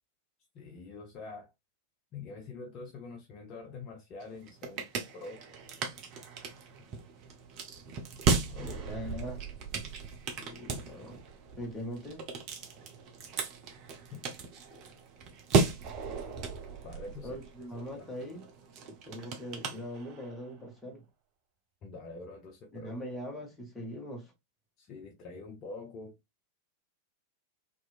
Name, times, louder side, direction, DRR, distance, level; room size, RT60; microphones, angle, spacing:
voice 1, 0.5-1.5 2.1-5.4 8.4-9.0 14.1-14.2 16.8-17.4 17.9-18.1 21.8-22.9 24.8-26.1, left 3 dB, 35° left, 0.5 m, -45 dB
sound 1, 4.2-20.4, right 4 dB, 40° right, 0.6 m, -35 dB
voice 2, 8.6-9.4 10.3-11.2 11.6-12.2 14.7-14.9 17.2-18.4 18.8-21.0 22.7-24.3, equal, 10° left, 1.1 m, -41 dB
2.9 x 2.4 x 2.3 m
figure-of-eight pair, 90°, 0 cm